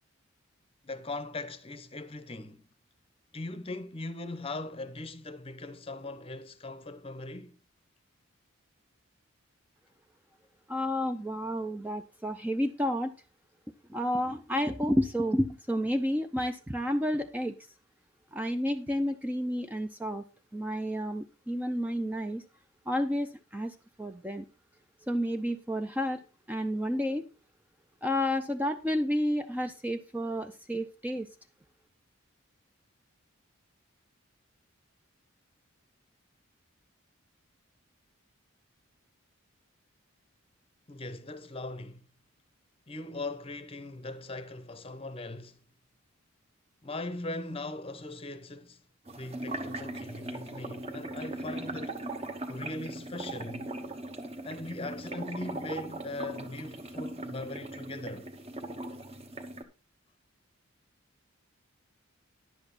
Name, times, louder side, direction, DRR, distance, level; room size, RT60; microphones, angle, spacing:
voice 1, 0.8-2.6 3.3-7.6 40.9-42.0 42.9-45.6 46.8-48.8 49.1-52.0 52.5-53.7 54.4-58.3, left 2 dB, 25° left, 0.8 m, -40 dB
voice 2, 10.7-13.1 13.9-17.5 18.3-20.2 20.5-22.4 22.9-24.4 25.1-26.2 26.5-27.3 28.0-31.3, equal, 10° right, 0.4 m, -30 dB
sound 1, 49.1-59.6, right 2 dB, 30° right, 1.0 m, -39 dB
10.5 x 8.0 x 4.1 m
head